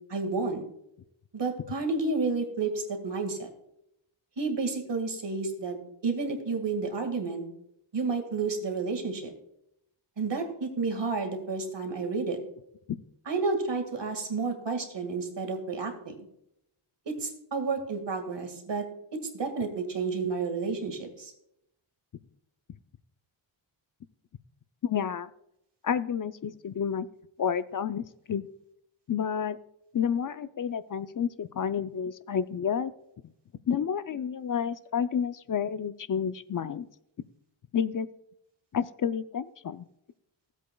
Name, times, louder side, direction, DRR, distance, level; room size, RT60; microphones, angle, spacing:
voice 1, 0.1-0.6 1.3-3.5 4.4-5.8 6.0-7.4 7.9-9.3 10.2-12.4 13.3-16.2 17.2-18.8 19.3-21.3, right 4 dB, 55° right, 5 dB, 2.0 m, -31 dB
voice 2, 24.8-25.3 25.8-27.1 27.4-28.5 29.1-29.6 29.9-32.9 33.7-36.9 37.7-38.1 38.7-39.8, left 7 dB, 45° left, 14 dB, 0.5 m, -30 dB
16.0 x 8.1 x 2.3 m, 0.77 s
wide cardioid pair, 90°, 49 cm